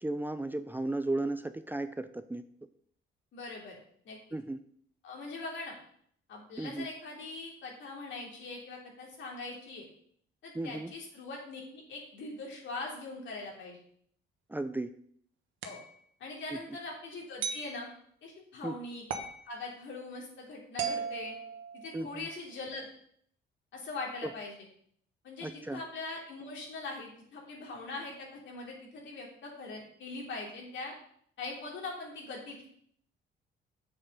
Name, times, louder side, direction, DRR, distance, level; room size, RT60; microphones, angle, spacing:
voice 1, 0.0-2.4 4.3-4.6 6.6-6.9 10.5-10.9 14.5-14.9 18.6-18.7 21.9-22.3 25.4-25.8, right 2 dB, 10° right, 10 dB, 0.5 m, -35 dB
voice 2, 3.3-3.8 4.0-4.2 5.0-5.7 6.3-9.9 10.4-13.8 15.6-15.8 16.2-17.9 18.2-19.0 19.5-21.4 21.7-22.9 23.7-24.5 25.2-30.9 31.4-32.7, left 3 dB, 70° left, -1 dB, 3.1 m, -42 dB
sound 1, 15.6-15.9 17.4-17.7 19.1-19.4 20.8-22.2, right 6 dB, 80° right, 1.2 m, -36 dB
7.1 x 6.8 x 5.4 m, 0.64 s
cardioid pair, 90°, 20 cm